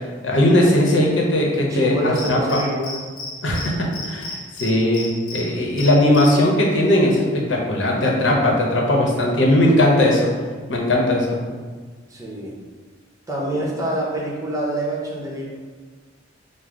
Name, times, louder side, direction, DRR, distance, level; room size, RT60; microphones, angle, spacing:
voice 1, 0.2-2.6 3.4-10.3 10.7-11.4, left 1 dB, 85° left, -1 dB, 0.8 m, -18 dB
voice 2, 1.7-3.0 12.1-12.5 13.3-15.4, right 1 dB, 20° right, -4 dB, 0.8 m, -26 dB
Cricket, 2.2-3.3 3.5-3.7 3.9-5.4 5.8-6.3, left 4 dB, 45° left, 0.8 m, -32 dB
5.1 x 2.0 x 3.6 m, 1.4 s
head